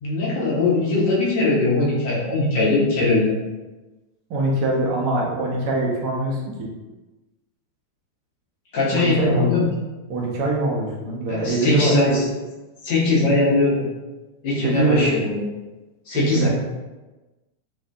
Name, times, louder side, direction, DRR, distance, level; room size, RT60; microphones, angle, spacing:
voice 1, 0.0-3.4 8.7-9.7 11.3-12.2 12.8-13.9 14.4-15.4 16.1-16.5, left 2 dB, 45° left, -6 dB, 0.9 m, -20 dB
voice 2, 4.3-6.7 8.9-9.5 10.1-12.2 14.6-15.1 16.1-16.5, right 2 dB, 45° right, -3 dB, 0.7 m, -23 dB
2.6 x 2.4 x 2.2 m, 1.1 s
figure-of-eight pair, 90°, 0 cm